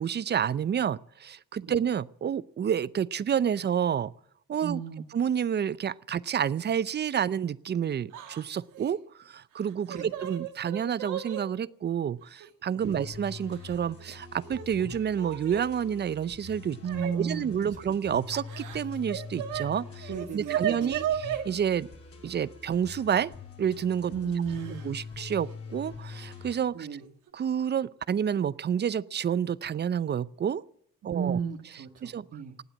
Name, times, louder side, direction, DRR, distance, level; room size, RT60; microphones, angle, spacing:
voice 1, 0.0-4.1 4.5-4.8 5.1-21.9 22.2-23.3 23.6-24.1 24.8-26.9 27.3-30.6 31.0-31.4 32.0-32.3, right 8 dB, 35° right, 19 dB, 0.5 m, -29 dB
voice 2, 4.6-5.0 9.9-10.1 12.8-12.9 16.8-17.5 20.1-21.0 24.1-24.9 26.7-27.0 31.1-32.6, right 7 dB, 55° right, 3 dB, 1.6 m, -33 dB
Yell / Crying sobbing, 8.1-8.4 8.7-8.9 9.6-11.4 12.4-12.5 13.5-14.1 14.4-15.7 16.8-17.1 18.3-19.7 20.0-21.4 23.1-23.2 24.5-24.9 25.2-25.3 26.4-26.6 27.0-27.3, right 10 dB, 85° right, 2.0 m, -35 dB
sound 1, 12.8-26.5, left 5 dB, 50° left, 3.6 m, -44 dB
18.5 x 8.0 x 8.5 m, 0.68 s
cardioid pair, 90°, 30 cm